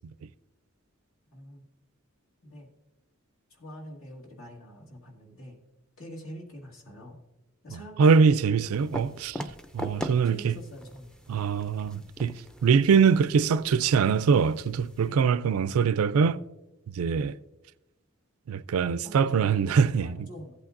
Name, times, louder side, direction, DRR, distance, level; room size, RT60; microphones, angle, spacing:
voice 1, 1.3-1.7 2.4-2.7 3.5-5.6 6.0-7.2 7.6-8.3 10.2-11.2 15.0-15.3 19.0-20.5, equal, 75° left, 2.0 m, -45 dB
voice 2, 7.7-9.4 9.7-10.6 11.3-16.4 16.9-17.4 18.5-20.3, right 6 dB, 80° right, 0.4 m, -23 dB
sound 1, 8.7-15.1, equal, 5° left, 0.4 m, -41 dB
15.0 x 8.4 x 2.6 m
head